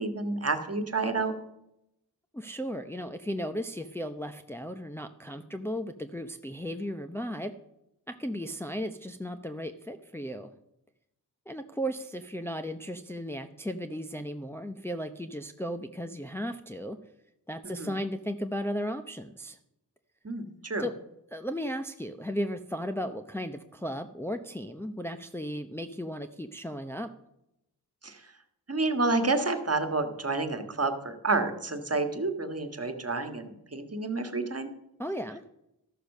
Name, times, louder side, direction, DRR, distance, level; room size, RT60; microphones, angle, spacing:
voice 1, 0.0-1.3 17.6-17.9 20.2-20.8 28.0-28.2 28.7-34.7, right 3 dB, 35° right, 7 dB, 1.7 m, -29 dB
voice 2, 2.3-7.5 8.1-10.5 11.5-17.0 17.5-19.6 20.8-20.9 21.3-27.1 35.0-35.4, equal, 5° left, 5 dB, 0.7 m, -35 dB
13.0 x 6.7 x 6.5 m, 0.84 s
cardioid pair, 50°, 40 cm